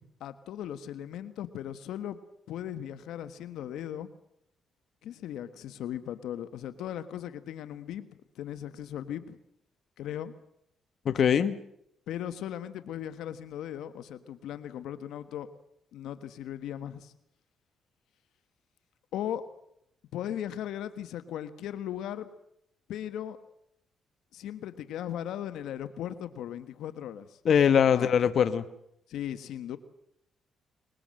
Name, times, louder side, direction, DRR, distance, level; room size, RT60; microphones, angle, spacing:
voice 1, 0.2-2.2 2.5-4.1 5.0-8.1 8.3-9.4 10.0-10.3 12.1-15.5 15.9-17.1 19.1-19.4 20.1-22.3 22.9-23.4 24.3-27.4 27.9-28.1 29.1-29.8, left 10 dB, 80° left, 11 dB, 1.3 m, -37 dB
voice 2, 11.0-11.6 27.4-28.6, left 8 dB, 60° left, 11 dB, 1.3 m, -22 dB
23.5 x 21.5 x 7.7 m, 0.75 s
cardioid pair, 90°, 0 cm